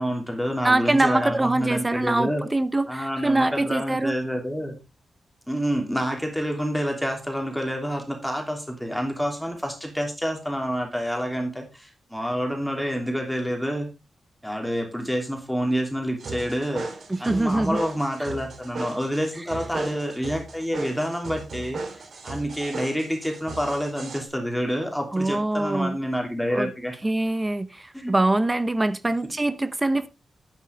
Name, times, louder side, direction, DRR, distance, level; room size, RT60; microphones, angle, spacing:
voice 1, 0.0-2.4 2.9-4.8 5.5-13.9 14.4-16.9 17.2-26.9 27.9-28.1, equal, ahead, 3.0 m, -28 dB
voice 2, 0.6-4.1 17.1-17.8 25.1-26.0 26.5-26.7 27.0-30.1, right 2 dB, 20° right, 0.8 m, -23 dB
sound 1, 16.2-24.2, right 3 dB, 65° right, 3.0 m, -36 dB
11.5 x 9.3 x 3.5 m
wide cardioid pair, 125°, 0 cm